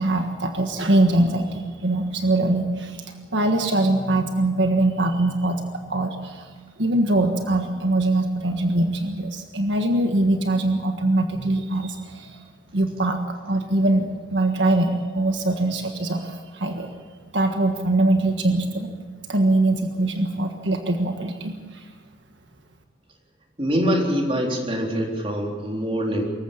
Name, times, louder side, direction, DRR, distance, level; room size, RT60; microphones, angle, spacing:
voice 1, 0.0-6.5 6.8-12.4 12.7-16.9 17.3-18.9 19.3-21.9, right 2 dB, 75° right, 5 dB, 1.5 m, -22 dB
voice 2, 23.6-26.2, equal, 30° right, 0 dB, 3.8 m, -24 dB
24.5 x 14.5 x 8.6 m, 1.5 s
head